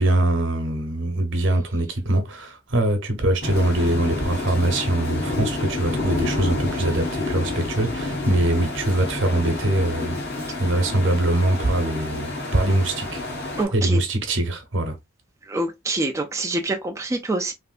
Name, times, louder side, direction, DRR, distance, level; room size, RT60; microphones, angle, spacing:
voice 1, 0.0-10.2 10.6-13.2 13.7-15.0, right 1 dB, 65° right, 0.9 m, -23 dB
sound 1, 3.4-13.6, left 2 dB, 55° left, 1.1 m, -29 dB
voice 2, 13.6-14.0 15.5-17.5, right 2 dB, 15° right, 0.3 m, -26 dB
3.3 x 2.5 x 2.4 m
head